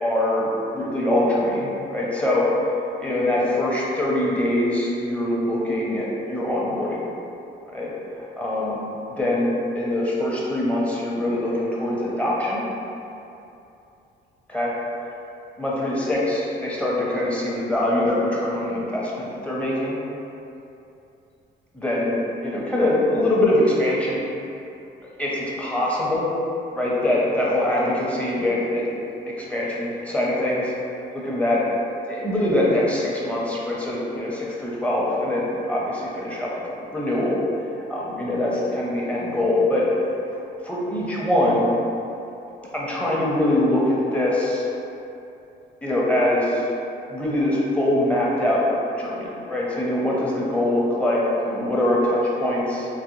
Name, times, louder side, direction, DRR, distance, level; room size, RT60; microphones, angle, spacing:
voice 1, 0.0-2.4 3.0-7.0 7.7-7.9 8.4-8.8 9.1-12.6 14.5-14.7 15.6-20.0 21.7-24.2 25.2-25.3 25.6-26.3 26.7-28.8 29.3-30.7 31.1-31.6 32.1-36.5 36.9-37.4 37.9-39.8 40.6-41.7 42.7-44.7 45.8-46.7 47.1-48.6 49.0-52.9, left 1 dB, 5° left, -6 dB, 0.7 m, -23 dB
3.9 x 2.1 x 3.0 m, 2.8 s
cardioid pair, 90°, 20 cm